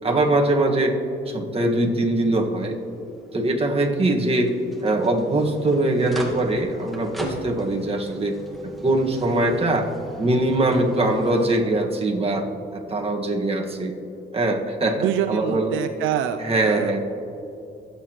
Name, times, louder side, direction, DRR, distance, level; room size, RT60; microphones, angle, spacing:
voice 1, 0.0-1.0 1.3-2.8 3.3-4.5 4.8-8.4 8.6-9.9 10.2-12.5 12.7-13.9 14.3-15.8 16.4-17.0, right 2 dB, 30° right, 1 dB, 1.7 m, -22 dB
sound 1, 1.9-11.6, equal, ahead, 1.7 m, -39 dB
voice 2, 15.0-17.0, right 9 dB, 90° right, 8 dB, 0.5 m, -26 dB
24.5 x 8.4 x 3.1 m, 2.8 s
cardioid pair, 90°, 20 cm